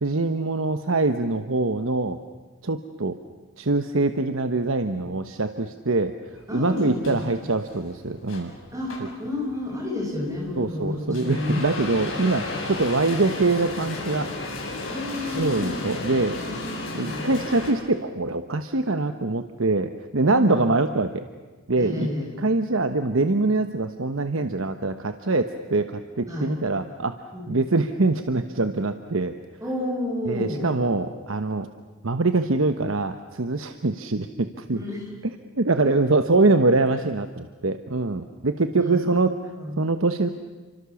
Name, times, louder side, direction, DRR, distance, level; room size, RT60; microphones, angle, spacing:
voice 1, 0.0-2.2 2.6-3.2 3.6-6.1 6.5-8.5 10.6-14.3 15.3-16.4 16.9-21.2 21.7-22.1 22.4-27.2 27.5-29.3 30.3-31.7 32.0-34.8 35.6-39.3 39.8-40.3, right 3 dB, 65° right, 8 dB, 1.0 m, -24 dB
sound 1, 6.4-17.7, left 2 dB, 65° left, 6.8 m, -34 dB
voice 2, 6.5-7.2 8.7-11.6 14.8-15.8 17.0-17.3 20.3-20.7 21.8-22.3 26.3-26.5 27.3-27.6 29.6-30.7 34.7-35.1 38.8-39.7, left 2 dB, 15° right, 0 dB, 6.1 m, -30 dB
29.5 x 25.0 x 7.1 m, 1.3 s
head